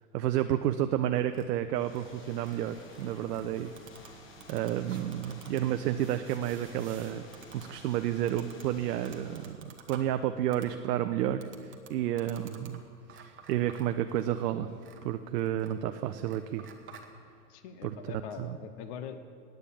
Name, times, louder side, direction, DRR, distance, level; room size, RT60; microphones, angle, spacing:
voice 1, 0.1-3.7 4.5-12.8 13.1-14.7 15.0-16.7 17.8-17.9 18.4-18.5, right 11 dB, 70° right, 8 dB, 0.7 m, -31 dB
sound 1, 1.1-17.1, right 6 dB, 25° right, 1.1 m, -54 dB
sound 2, 1.7-9.6, left 1 dB, 25° left, 1.1 m, -52 dB
voice 2, 17.5-19.2, left 7 dB, 45° left, 10 dB, 0.9 m, -43 dB
9.2 x 8.2 x 8.5 m, 2.3 s
hypercardioid pair, 115°, 49 cm